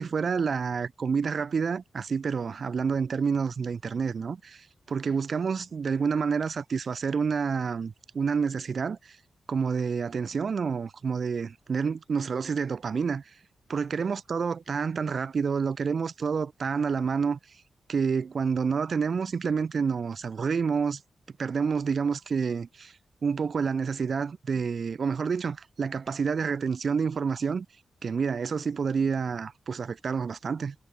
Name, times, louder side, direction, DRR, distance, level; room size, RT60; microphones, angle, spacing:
voice 1, 0.0-9.2 9.5-13.2 13.7-17.4 17.9-21.0 21.4-22.9 23.2-27.6 28.0-30.7, right 5 dB, 45° right, 3.5 m, -28 dB
wide cardioid pair, 170°, 0 cm